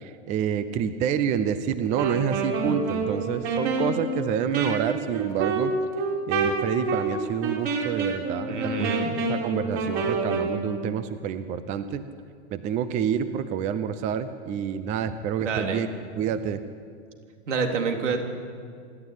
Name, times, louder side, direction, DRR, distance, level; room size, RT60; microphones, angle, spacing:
voice 1, 0.0-5.7 6.3-8.9 9.3-12.0 12.5-16.6, right 8 dB, 20° right, 12 dB, 0.6 m, -28 dB
Wind instrument woodwind instrument, 1.8-10.6, right 3 dB, 40° right, 4.0 m, -27 dB
voice 2, 8.5-9.1 15.4-15.9 16.2-16.3 17.5-18.2, right 5 dB, 85° right, 3 dB, 3.6 m, -27 dB
26.0 x 12.0 x 9.7 m, 2.2 s
supercardioid pair, 155°, 35 cm